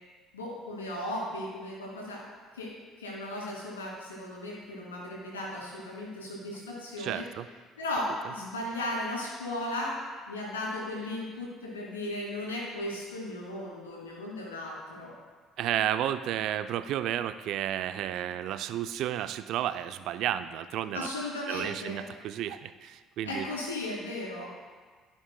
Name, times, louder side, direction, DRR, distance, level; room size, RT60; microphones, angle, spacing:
voice 1, 0.3-2.2 2.5-2.7 3.0-7.2 7.8-9.9 10.3-15.1 20.9-22.1 23.2-24.5, left 1 dB, 90° left, -4 dB, 2.4 m, -36 dB
voice 2, 7.0-7.5 15.6-21.1 21.5-23.5, right 11 dB, 60° right, 12 dB, 0.4 m, -32 dB
16.0 x 6.1 x 2.2 m, 1.5 s
hypercardioid pair, 55°, 0 cm